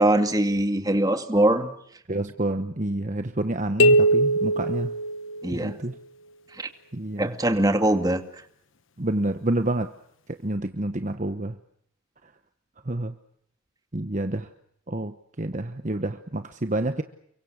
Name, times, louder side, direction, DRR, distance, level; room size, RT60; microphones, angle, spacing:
voice 1, 0.0-1.7 5.4-5.7 6.5-6.7 7.2-8.2, right 1 dB, 20° right, 2.2 m, -22 dB
voice 2, 2.1-4.9 5.5-5.9 6.9-7.3 9.0-9.9 10.3-11.6 12.8-13.1 13.9-14.5 14.9-17.0, right 1 dB, 35° right, 1.1 m, -28 dB
sound 1, 3.8-5.7, right 1 dB, 70° left, 1.2 m, -21 dB
30.0 x 24.0 x 6.5 m
head